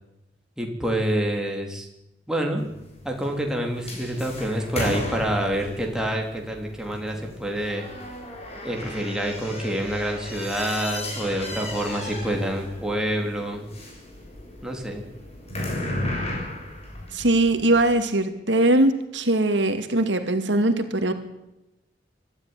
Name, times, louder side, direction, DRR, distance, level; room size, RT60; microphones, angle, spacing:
voice 1, 0.6-1.9 2.3-2.6 3.0-7.9 8.6-13.6 14.6-15.1, right 1 dB, 5° right, 1 dB, 3.6 m, -27 dB
sound 1, 2.6-18.0, left 1 dB, 35° left, 6.8 m, -35 dB
voice 2, 17.1-21.1, right 1 dB, 75° right, 7 dB, 2.3 m, -21 dB
25.0 x 13.0 x 9.8 m, 0.92 s
head